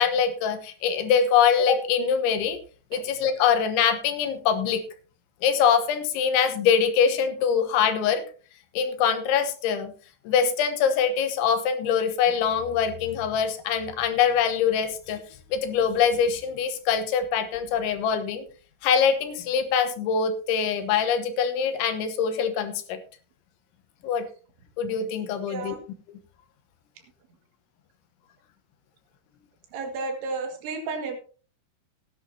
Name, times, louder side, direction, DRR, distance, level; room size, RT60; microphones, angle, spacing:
voice 1, 0.0-2.6 2.9-4.8 5.4-8.2 8.8-9.9 10.3-15.2 15.5-18.5 18.8-23.0 24.0-24.3 24.8-25.8, left 7 dB, 85° left, 9 dB, 3.6 m, -23 dB
voice 2, 29.7-31.2, right 3 dB, 85° right, 4 dB, 4.4 m, -32 dB
16.5 x 10.5 x 2.8 m, 0.38 s
omnidirectional pair, 5.2 m